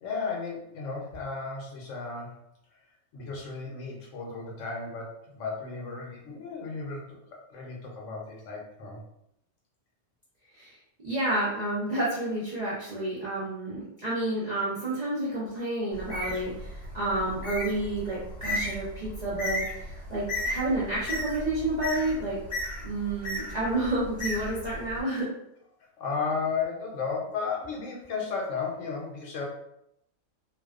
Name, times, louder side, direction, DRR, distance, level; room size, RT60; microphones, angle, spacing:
voice 1, 0.0-2.4 2.7-2.8 3.1-9.0 26.0-29.5, left 5 dB, 70° left, -1 dB, 0.9 m, -34 dB
voice 2, 11.0-22.4 22.8-25.3, right 1 dB, 50° right, -8 dB, 0.5 m, -30 dB
Bird, 15.9-25.0, left 1 dB, 40° left, 0.8 m, -35 dB
2.5 x 2.2 x 2.3 m, 0.77 s
omnidirectional pair, 1.4 m